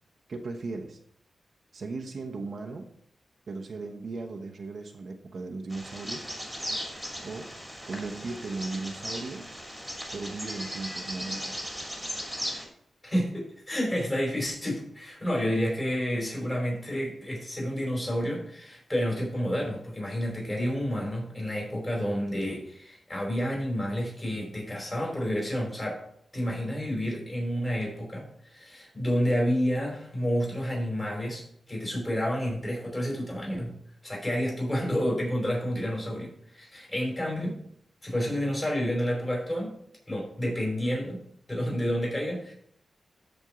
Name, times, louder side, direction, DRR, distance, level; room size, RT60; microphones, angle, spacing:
voice 1, 0.3-1.0 1.7-2.9 3.5-6.3 7.2-7.5 7.9-9.5 10.1-11.8, right 3 dB, 60° right, 3 dB, 1.0 m, -37 dB
Bird vocalization bird call bird song, 5.7-12.6, equal, ahead, 2.6 m, -37 dB
voice 2, 13.0-26.0 26.3-33.7 34.0-37.6 38.0-39.7 40.1-41.2 41.5-42.5, equal, 20° left, -2 dB, 4.7 m, -30 dB
13.5 x 4.5 x 5.0 m, 0.67 s
wide cardioid pair, 105°, 0 cm